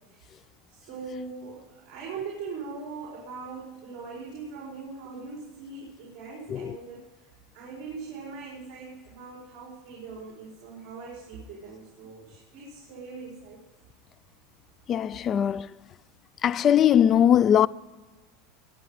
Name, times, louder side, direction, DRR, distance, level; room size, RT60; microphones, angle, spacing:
voice 1, 0.1-0.4 0.7-13.6, right 4 dB, 45° right, 4.8 m, -41 dB
voice 2, 14.9-15.7 16.4-17.7, left 9 dB, 30° left, 0.4 m, -20 dB
21.0 x 9.0 x 4.9 m
supercardioid pair, 145°, 0 cm